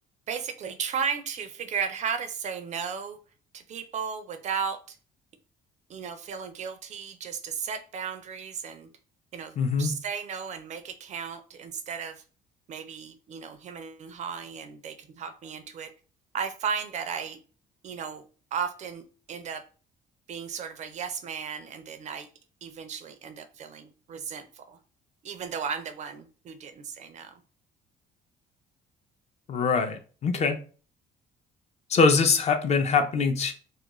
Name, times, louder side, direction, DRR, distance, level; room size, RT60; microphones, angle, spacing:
voice 1, 0.3-3.2 3.5-5.0 5.9-8.9 9.3-12.2 12.7-15.9 16.3-17.4 17.8-18.2 18.5-19.0 19.3-19.6 20.3-22.3 22.6-24.8 25.2-27.4, right 6 dB, 45° right, 9 dB, 0.4 m, -35 dB
voice 2, 9.6-9.9 29.5-30.6 31.9-33.5, left 5 dB, 40° left, 7 dB, 0.4 m, -23 dB
2.4 x 2.1 x 2.9 m, 0.38 s
cardioid pair, 110°, 17 cm